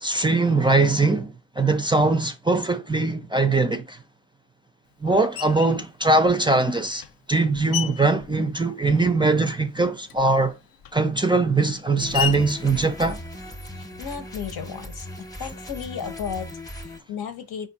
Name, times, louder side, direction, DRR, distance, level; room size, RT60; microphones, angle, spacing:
voice 1, 0.0-4.0 5.0-7.0 7.3-10.5 10.9-13.2, right 3 dB, 15° right, 0.3 m, -21 dB
Screech, 5.4-5.8 6.6-9.3 9.6-13.9, left 10 dB, 70° left, 0.5 m, -35 dB
sound 1, 12.0-17.0, equal, 10° left, 0.7 m, -38 dB
voice 2, 13.7-15.1 15.4-17.7, left 7 dB, 90° left, 1.0 m, -34 dB
5.1 x 2.6 x 4.0 m
wide cardioid pair, 165°, 37 cm